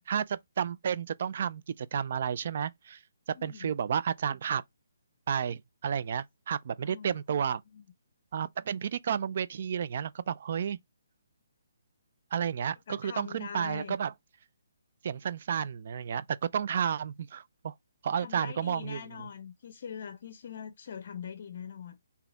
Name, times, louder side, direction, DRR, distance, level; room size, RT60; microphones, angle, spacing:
voice 1, 0.1-3.0 3.4-4.6 5.3-7.6 8.3-10.8 12.3-14.1 15.0-16.2 16.5-17.7 18.0-19.0, right 8 dB, 50° right, 0.4 m, -31 dB
voice 2, 3.3-3.7 6.8-7.2 7.7-7.8 12.9-14.0 18.2-22.0, left 7 dB, 50° left, 0.5 m, -42 dB
3.9 x 2.8 x 4.5 m
figure-of-eight pair, 140°, 0 cm